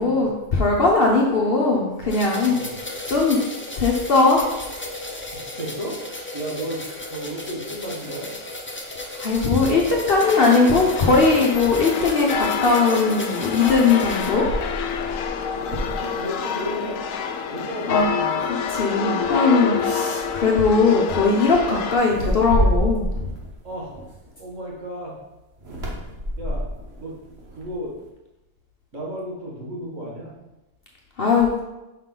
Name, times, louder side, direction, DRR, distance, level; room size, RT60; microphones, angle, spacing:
voice 1, 0.0-3.4 3.8-4.5 9.2-14.5 17.9-18.1 18.4-23.3 31.2-31.6, left 4 dB, 55° left, -1 dB, 0.9 m, -19 dB
sound 1, 2.1-14.3, left 1 dB, 15° left, 0.5 m, -35 dB
voice 2, 2.4-2.8 5.3-6.0 6.3-6.8 7.1-8.3 15.7-17.0 17.5-18.4 23.6-23.9 24.4-25.1 26.4-26.6 27.0-27.1 27.5-27.9 28.9-30.3, equal, 70° right, -5 dB, 2.1 m, -33 dB
sound 2, 10.2-22.0, left 6 dB, 90° left, 1.0 m, -27 dB
sound 3, 13.5-17.2 17.5-17.8 18.3-18.9 19.8-20.0 20.3-20.6 22.0-24.6 25.6-28.0, equal, 55° right, 1.3 m, -29 dB
5.7 x 5.5 x 3.8 m, 1.0 s
omnidirectional pair, 1.3 m